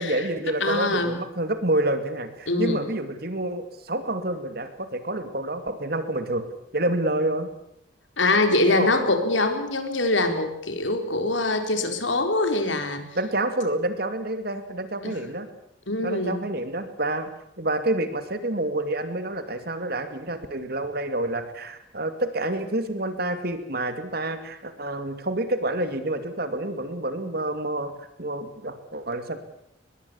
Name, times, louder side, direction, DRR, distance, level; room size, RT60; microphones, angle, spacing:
voice 1, 0.0-6.5 6.7-7.5 8.7-8.9 13.2-15.5 16.0-17.3 17.6-27.9 28.2-29.4, right 1 dB, 55° right, 9 dB, 2.6 m, -28 dB
voice 2, 0.6-1.1 2.5-2.8 8.2-13.1 15.0-15.2 15.9-16.4, left 2 dB, 85° left, 7 dB, 4.3 m, -24 dB
23.5 x 21.0 x 7.2 m, 0.78 s
head